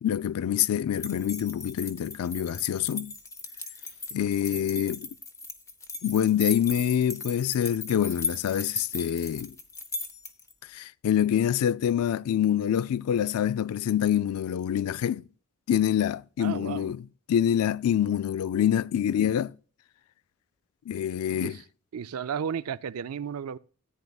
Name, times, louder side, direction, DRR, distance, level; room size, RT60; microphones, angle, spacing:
voice 1, 0.0-3.1 4.1-5.1 6.0-9.5 10.7-15.3 15.7-19.5 20.9-21.6, left 9 dB, 85° left, 0.3 m, -26 dB
sound 1, 0.9-10.5, left 3 dB, 15° left, 0.7 m, -37 dB
voice 2, 16.4-16.9 21.4-21.6 21.9-23.6, right 7 dB, 85° right, 0.4 m, -33 dB
14.0 x 9.3 x 2.3 m
head